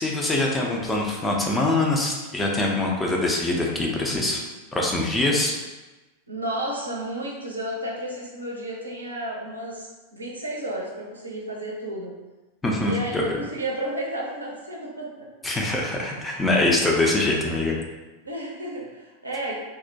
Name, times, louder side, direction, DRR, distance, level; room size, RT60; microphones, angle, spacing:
voice 1, 0.0-4.4 4.7-5.6 12.6-13.3 15.4-17.8, left 2 dB, 10° left, -1 dB, 0.4 m, -23 dB
voice 2, 6.3-12.1 12.8-15.3 16.0-16.4 18.2-19.6, right 1 dB, 80° right, -3 dB, 0.5 m, -32 dB
2.3 x 2.0 x 2.6 m, 1.1 s
figure-of-eight pair, 90°, 0 cm